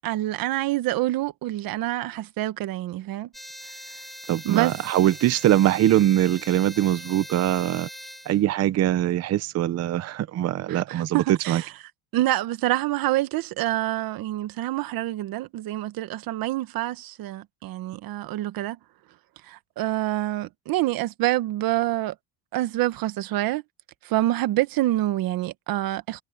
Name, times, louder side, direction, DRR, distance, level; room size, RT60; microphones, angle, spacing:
voice 1, 0.0-3.3 4.4-4.8 10.7-11.7 12.1-18.8 19.5-22.1 22.5-23.6 24.0-26.2, right 16 dB, 50° right, 1.4 m, -26 dB
sound 1, 3.3-8.4, equal, ahead, 6.2 m, -41 dB
voice 2, 4.3-7.9 8.3-11.6, right 13 dB, 35° right, 0.7 m, -22 dB
cardioid pair, 150°, 44 cm